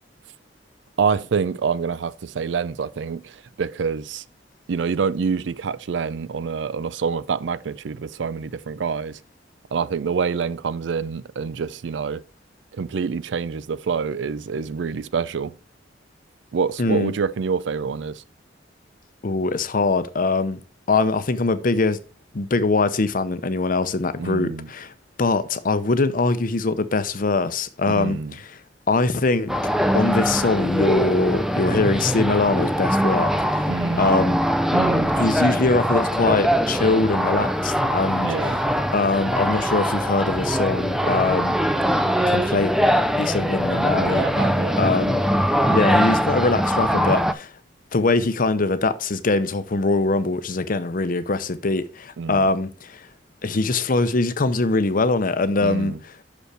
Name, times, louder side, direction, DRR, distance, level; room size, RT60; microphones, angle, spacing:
voice 1, 1.0-4.2 4.7-9.2 9.7-12.2 12.7-15.5 16.5-18.2 24.2-24.7 27.9-28.3 33.7-34.1 34.7-35.1 38.2-38.6 44.0-44.9 52.2-52.5 55.6-56.0, right 5 dB, 70° right, 0.4 m, -26 dB
voice 2, 16.8-17.1 19.2-20.6 20.9-22.0 22.3-24.9 25.2-28.6 28.9-29.5 29.9-33.7 34.0-34.4 35.1-38.3 38.9-41.6 42.3-42.7 43.2-44.2 44.8-45.2 45.7-47.5 47.9-53.1 53.4-55.9, left 3 dB, 50° left, 0.7 m, -22 dB
sound 1, 29.5-47.3, equal, ahead, 0.4 m, -22 dB
6.3 x 5.3 x 4.8 m
head